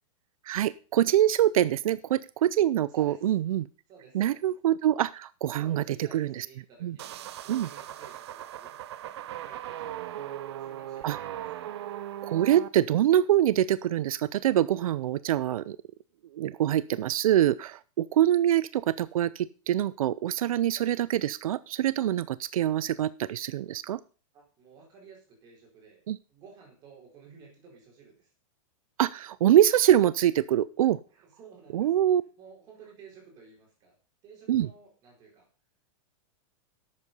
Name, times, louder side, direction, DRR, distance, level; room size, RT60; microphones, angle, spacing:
voice 1, 0.5-3.7 4.1-5.8 6.1-6.5 6.8-7.0 7.5-7.7 11.0-11.2 12.2-15.8 16.3-24.0 26.1-26.2 29.0-31.0 31.7-32.2 34.5-34.7, right 12 dB, 85° right, 18 dB, 0.6 m, -24 dB
voice 2, 2.9-3.2 3.9-4.5 5.5-8.8 9.1-11.7 18.3-18.4 24.3-26.0 26.3-28.3 31.2-32.1 32.4-34.0 34.2-35.5, right 5 dB, 25° right, 0 dB, 4.6 m, -53 dB
sound 1, 7.0-12.7, right 12 dB, 50° right, 0.8 m, -38 dB
11.5 x 8.3 x 5.4 m, 0.37 s
supercardioid pair, 180°, 17 cm